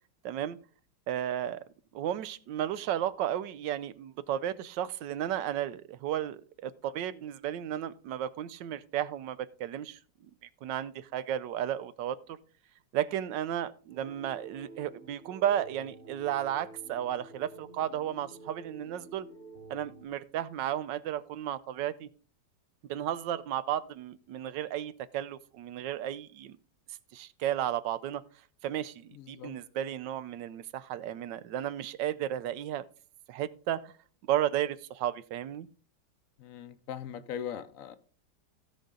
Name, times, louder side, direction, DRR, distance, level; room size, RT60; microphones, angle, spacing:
voice 1, 0.2-0.6 1.1-1.6 1.9-10.0 10.6-12.4 12.9-19.3 19.7-22.1 22.9-26.6 27.1-28.2 28.6-32.8 33.3-33.9 34.3-35.7, right 11 dB, 85° right, 1.3 m, -33 dB
sound 1, 13.9-20.1, right 2 dB, 30° right, 1.4 m, -50 dB
voice 2, 29.1-29.6 36.4-38.0, left 9 dB, 60° left, 0.9 m, -40 dB
16.0 x 5.3 x 3.7 m
omnidirectional pair, 1.9 m